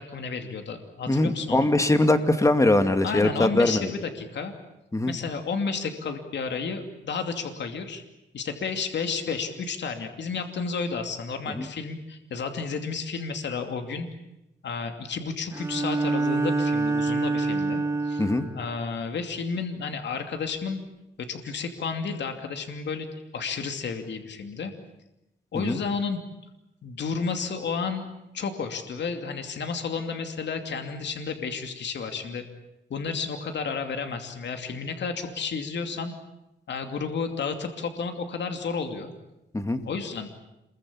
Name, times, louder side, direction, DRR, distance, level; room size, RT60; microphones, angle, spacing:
voice 1, 0.0-1.7 3.0-4.5 5.1-8.0 8.3-14.1 14.6-18.2 18.5-20.8 21.2-24.7 25.5-26.2 26.8-28.1 28.3-32.4 32.9-36.1 36.7-39.1 39.8-40.3, left 5 dB, 70° left, 6 dB, 2.7 m, -32 dB
voice 2, 1.1-3.9 4.9-5.1 11.6-11.7 18.2-18.4 25.6-25.8 39.5-39.8, left 2 dB, 15° left, 8 dB, 2.2 m, -22 dB
Bowed string instrument, 15.5-18.6, right 3 dB, 15° right, 3.3 m, -26 dB
27.5 x 22.5 x 8.6 m, 0.91 s
wide cardioid pair, 115°, 19 cm